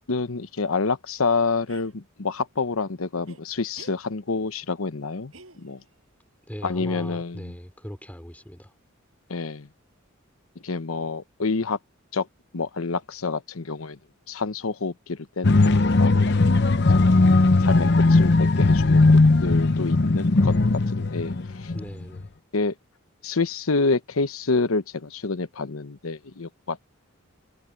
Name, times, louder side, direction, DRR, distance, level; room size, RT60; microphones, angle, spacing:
voice 1, 0.1-5.3 5.6-5.8 6.6-7.5 9.3-9.7 10.6-11.8 12.1-12.3 12.5-14.0 14.3-16.5 17.6-20.5 20.9-21.3 21.6-21.7 22.5-22.7 23.2-26.8, left 4 dB, 90° left, 1.0 m, -28 dB
sound 1, 1.7-1.9 3.3-3.4 3.7-4.0 5.3-6.0, right 3 dB, 75° right, 6.7 m, -48 dB
voice 2, 6.5-8.7 21.7-22.3, equal, 5° left, 3.6 m, -39 dB
sound 2, 15.4-21.8 22.2-22.3, left 3 dB, 55° left, 0.8 m, -18 dB
head